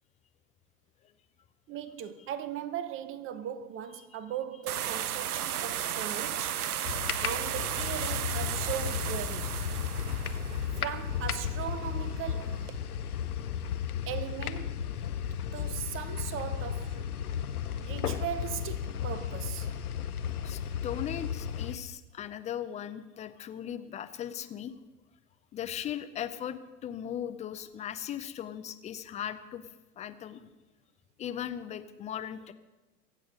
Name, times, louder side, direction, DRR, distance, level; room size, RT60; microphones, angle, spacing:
voice 1, 1.7-6.6 7.2-9.6 10.7-12.7 14.1-14.8 15.5-17.2 17.8-19.7, right 10 dB, 30° right, 0.9 m, -38 dB
sound 1, 4.7-12.8, right 10 dB, 75° right, 0.7 m, -35 dB
sound 2, 6.8-21.8, left 8 dB, 75° left, 1.0 m, -34 dB
voice 2, 20.4-24.7 25.5-29.7 30.0-30.4 31.2-32.5, left 10 dB, 15° left, 0.5 m, -38 dB
23.5 x 8.5 x 5.3 m
figure-of-eight pair, 95°, 45 cm